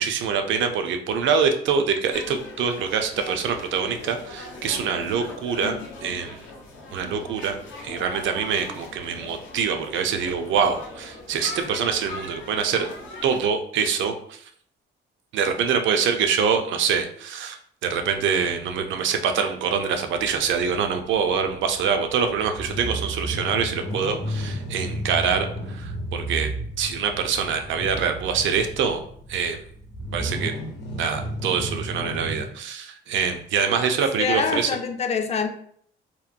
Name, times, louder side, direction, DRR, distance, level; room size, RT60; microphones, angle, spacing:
voice 1, 0.0-6.4 6.9-7.6 7.8-12.9 13.2-14.4 15.3-26.5 26.8-29.0 29.3-29.6 30.1-30.5 31.0-34.8, right 6 dB, 70° right, 6 dB, 0.4 m, -25 dB
sound 1, 2.1-13.4, left 2 dB, 85° left, 0.7 m, -40 dB
sound 2, 20.1-32.4, right 1 dB, 55° left, 0.8 m, -33 dB
voice 2, 34.2-35.5, left 5 dB, 35° left, 7 dB, 0.4 m, -25 dB
2.9 x 2.2 x 2.4 m, 0.62 s
cardioid pair, 90°, 20 cm